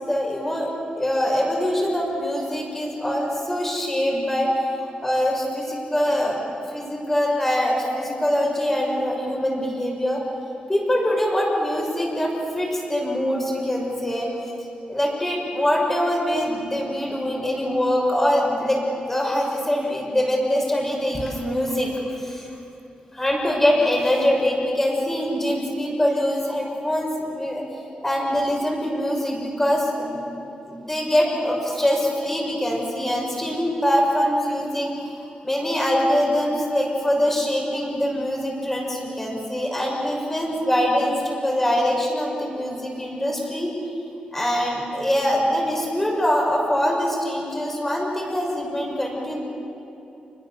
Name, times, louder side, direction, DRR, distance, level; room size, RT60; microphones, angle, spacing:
voice 1, 0.1-0.7 1.0-6.4 6.7-10.2 10.7-14.3 14.9-22.5 23.1-27.6 28.0-30.2 30.7-34.9 35.4-43.7 44.3-49.4, equal, 15° left, -1 dB, 6.0 m, -23 dB
29.5 x 21.0 x 7.0 m, 2.8 s
wide cardioid pair, 160°, 3 cm